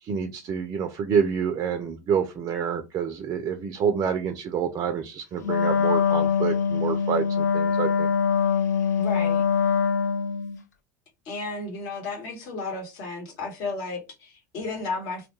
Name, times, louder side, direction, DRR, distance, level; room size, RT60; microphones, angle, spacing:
voice 1, 0.0-8.1, right 7 dB, 35° right, 0.4 m, -27 dB
Wind instrument woodwind instrument, 5.4-10.6, left 6 dB, 80° left, 0.4 m, -23 dB
voice 2, 9.0-9.4 11.2-15.3, left 3 dB, 50° left, 1.1 m, -33 dB
2.2 x 2.2 x 2.9 m
figure-of-eight pair, 80°, 9 cm